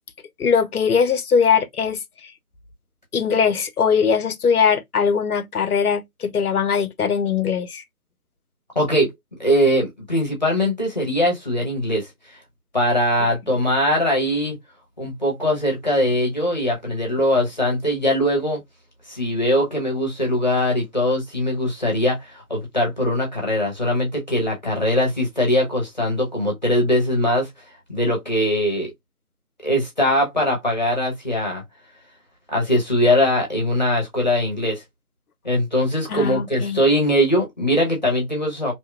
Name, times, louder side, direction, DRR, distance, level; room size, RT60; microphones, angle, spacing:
voice 1, 0.4-2.3 3.1-7.8 36.1-36.8, left 6 dB, 85° left, 0.6 m, -21 dB
voice 2, 8.7-9.1 9.4-12.4 12.7-14.6 15.0-18.6 19.1-27.5 27.9-28.9 29.6-31.6 32.5-34.8 35.4-38.7, equal, 30° left, 0.7 m, -21 dB
2.7 x 2.1 x 2.2 m
figure-of-eight pair, 160°, 44 cm